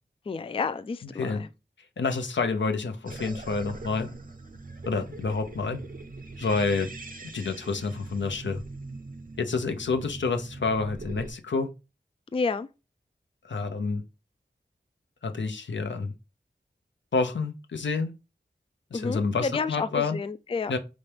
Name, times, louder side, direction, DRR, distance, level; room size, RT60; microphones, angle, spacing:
voice 1, 0.3-1.5 12.3-12.7 18.9-20.7, left 4 dB, 30° left, 0.4 m, -30 dB
voice 2, 1.0-1.4 2.0-4.1 4.8-5.8 6.4-6.9 7.3-8.6 9.4-11.7 13.5-14.0 15.2-16.1 17.1-18.1 18.9-20.2 20.7-20.8, left 4 dB, 75° left, 0.6 m, -28 dB
sound 1, 3.1-11.3, right 3 dB, 45° right, 0.6 m, -42 dB
4.2 x 3.4 x 3.3 m
cardioid pair, 40°, 19 cm